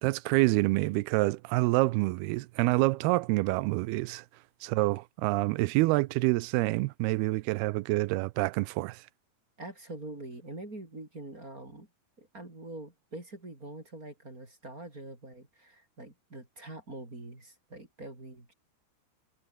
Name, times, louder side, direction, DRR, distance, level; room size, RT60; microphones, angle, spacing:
voice 1, 0.0-4.2 4.6-9.0, right 21 dB, 85° right, 2.6 m, -27 dB
voice 2, 9.6-11.9 12.2-18.5, right 2 dB, 20° right, 4.8 m, -44 dB
omnidirectional pair, 4.6 m